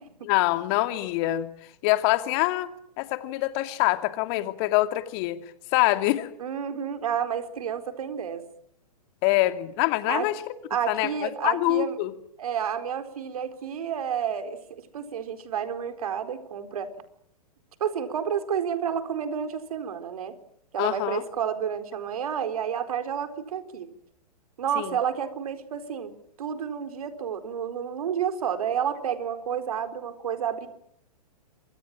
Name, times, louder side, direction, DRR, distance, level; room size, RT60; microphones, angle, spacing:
voice 1, 0.2-1.5 1.8-2.7 3.0-5.4 5.7-6.3 9.2-10.5 10.9-12.1 20.8-21.2 24.8-25.0, left 17 dB, 40° left, 10 dB, 2.5 m, -25 dB
voice 2, 6.4-8.4 10.1-10.3 10.7-11.9 12.4-16.9 17.8-20.4 20.7-23.9 24.6-26.1 26.4-30.7, right 8 dB, 60° right, 9 dB, 4.2 m, -30 dB
27.5 x 24.5 x 7.5 m, 0.71 s
figure-of-eight pair, 115°, 20 cm